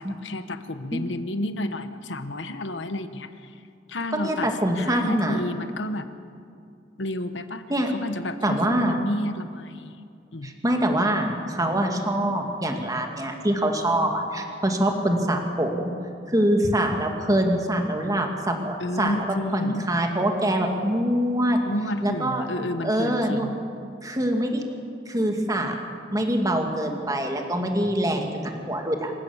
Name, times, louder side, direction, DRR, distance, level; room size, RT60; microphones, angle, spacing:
voice 1, 0.0-3.5 3.9-6.1 7.0-7.6 7.9-10.0 10.3-10.5 18.8-19.9 21.6-23.5, left 1 dB, 80° left, 10 dB, 1.3 m, -31 dB
voice 2, 4.1-5.4 7.7-7.9 8.4-9.0 10.4-15.9 16.3-19.1 19.5-21.6 22.0-22.4 22.8-23.5 24.0-24.6 25.1-25.7 26.1-29.1, right 1 dB, 20° right, 3 dB, 2.3 m, -24 dB
26.5 x 15.5 x 7.3 m, 2.4 s
head